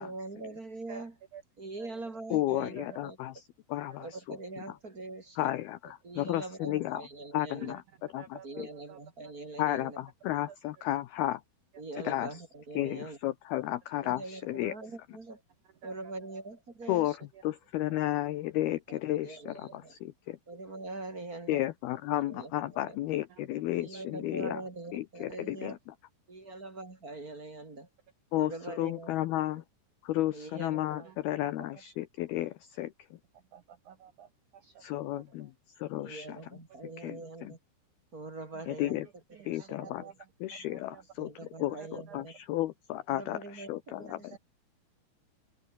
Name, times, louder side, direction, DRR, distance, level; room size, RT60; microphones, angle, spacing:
voice 1, 0.0-1.2 1.6-3.2 4.0-5.5 6.0-7.8 8.4-10.0 11.8-13.2 14.0-15.4 15.8-17.2 18.9-19.0 19.2-20.0 20.5-21.6 22.1-23.0 23.7-25.8 26.3-27.9 28.4-29.1 30.3-31.1 36.0-37.6 38.1-39.0 39.5-39.8 40.0-40.1 41.2-42.4 43.1-44.4, right 2 dB, 25° right, 2.4 m, -43 dB
voice 2, 2.3-3.4 3.7-4.4 5.4-7.0 7.3-7.8 8.1-8.7 9.6-11.4 12.0-12.3 12.8-14.7 16.9-17.2 17.4-20.4 21.5-24.6 24.9-25.8 28.3-28.5 28.8-29.6 30.0-32.9 34.8-35.5 35.8-36.4 37.0-37.5 38.7-39.1 39.5-40.0 40.4-41.3 41.6-44.4, left 15 dB, 85° left, 2.2 m, -33 dB
voice 3, 8.2-8.6 8.9-9.0 15.8-15.9 23.9-24.0 26.5-26.6 31.6-31.7 33.5-34.3 34.6-34.7 35.1-35.2 39.4-40.1 40.7-41.0 41.8-42.2 44.3-44.4, right 9 dB, 90° right, 1.7 m, -50 dB
open air
omnidirectional pair, 5.7 m